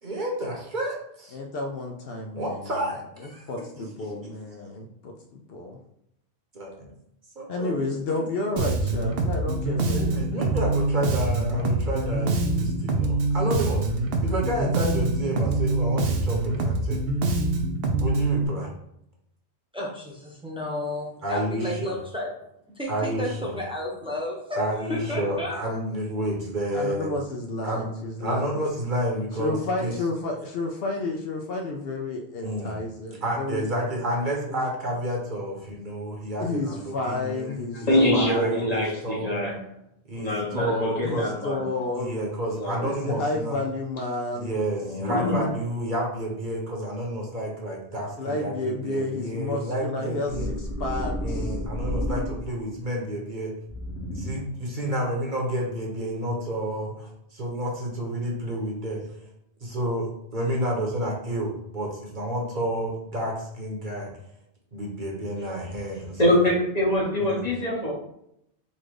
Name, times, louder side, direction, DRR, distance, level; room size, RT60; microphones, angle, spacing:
voice 1, 0.0-1.4 2.3-3.4 3.8-4.3 6.5-6.9 7.4-7.8 8.1-8.2 9.9-13.9 14.2-17.0 18.0-18.7 21.2-22.0 22.9-23.5 24.6-27.1 27.6-27.9 28.2-29.9 32.4-32.8 33.2-37.5 37.8-39.3 40.1-41.3 42.0-43.6 44.3-50.5 51.2-53.5 54.1-59.0 59.6-64.1 64.7-66.4 67.2-67.4, right 1 dB, 50° right, -2 dB, 1.1 m, -30 dB
voice 2, 1.3-2.7 3.2-5.8 7.5-10.5 26.7-28.6 29.4-33.6 34.5-34.7 36.4-38.7 41.0-42.2 42.8-44.5 48.2-51.5, left 2 dB, 65° left, 2 dB, 0.8 m, -31 dB
Bass guitar, 8.6-18.4, right 2 dB, 65° right, 0.8 m, -25 dB
voice 3, 19.7-22.3 22.7-25.6, left 1 dB, 5° right, -3 dB, 0.9 m, -32 dB
voice 4, 37.9-39.6 40.1-41.6 42.6-42.9 44.9-45.5 66.2-67.9, left 1 dB, 40° left, -3 dB, 1.2 m, -24 dB
sound 1, 50.3-52.7 53.7-54.6, equal, 90° left, 1.2 m, -31 dB
4.1 x 2.4 x 4.7 m, 0.77 s
omnidirectional pair, 1.1 m